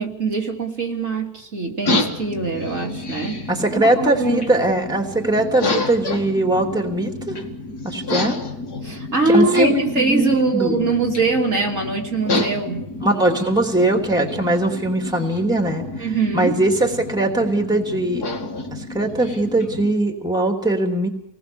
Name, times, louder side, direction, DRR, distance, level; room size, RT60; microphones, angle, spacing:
voice 1, 0.0-3.4 3.7-4.5 8.8-13.0 16.0-16.6, right 3 dB, 50° right, -1 dB, 3.2 m, -22 dB
sound 1, 1.8-19.9, left 2 dB, 75° left, 3.1 m, -30 dB
voice 2, 3.5-7.4 7.8-8.4 9.3-10.9 13.0-16.1 16.3-18.3 18.7-21.1, right 1 dB, ahead, 3 dB, 2.9 m, -20 dB
28.0 x 20.0 x 7.1 m, 0.76 s
omnidirectional pair, 1.7 m